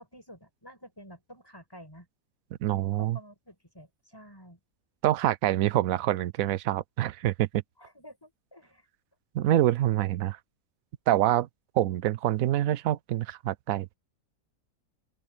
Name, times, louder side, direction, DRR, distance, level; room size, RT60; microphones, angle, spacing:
voice 1, 0.0-2.1 3.0-4.6 7.8-8.9, equal, 15° left, 7.3 m, -50 dB
voice 2, 2.6-3.2 5.0-7.6 9.3-10.4 11.1-11.5 11.8-13.9, right 13 dB, 70° right, 1.0 m, -26 dB
open air
omnidirectional pair, 1.6 m